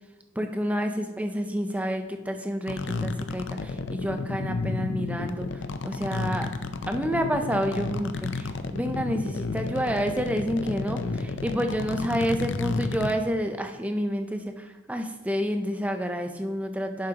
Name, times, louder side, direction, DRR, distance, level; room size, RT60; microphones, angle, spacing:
voice 1, 0.4-6.5 6.9-17.1, equal, 10° right, 5 dB, 0.5 m, -29 dB
sound 1, 2.7-13.1, left 3 dB, 80° left, 0.5 m, -31 dB
9.9 x 7.4 x 2.9 m, 1.2 s
head